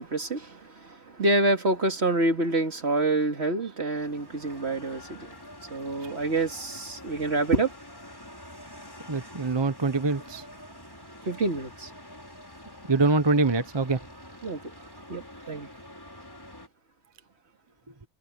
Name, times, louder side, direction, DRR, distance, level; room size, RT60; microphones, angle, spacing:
voice 1, 0.0-5.4 5.7-7.7 11.3-11.9 14.4-14.6 15.1-15.7, right 2 dB, 60° right, 2.7 m, -27 dB
sound 1, 4.0-16.7, left 1 dB, 15° left, 5.1 m, -46 dB
voice 2, 9.1-10.4 12.9-14.0, right 3 dB, 20° right, 1.1 m, -24 dB
omnidirectional pair, 1.3 m